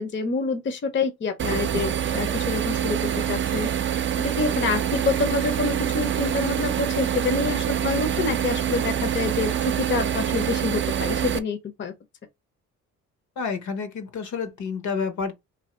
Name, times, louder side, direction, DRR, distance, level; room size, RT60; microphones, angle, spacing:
voice 1, 0.0-3.0 3.3-3.7 4.2-11.9, left 4 dB, 40° left, 0.7 m, -27 dB
sound 1, 1.4-11.4, right 9 dB, 40° right, 0.5 m, -25 dB
voice 2, 13.4-15.3, left 5 dB, 70° left, 1.1 m, -29 dB
2.7 x 2.7 x 4.3 m
cardioid pair, 90°, 30 cm